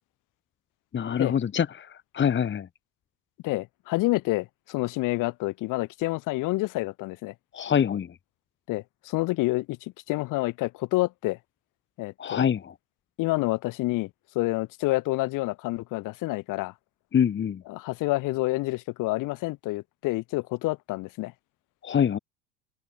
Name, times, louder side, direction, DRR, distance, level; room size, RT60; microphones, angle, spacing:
voice 1, 0.9-2.7 7.5-8.1 12.2-12.7 17.1-17.6 21.8-22.2, left 8 dB, 30° left, 2.3 m, -25 dB
voice 2, 3.4-7.3 8.7-11.4 12.0-12.4 13.2-14.1 14.3-16.7 17.7-21.3, left 20 dB, 55° left, 4.5 m, -28 dB
open air
hypercardioid pair, 80°, 37 cm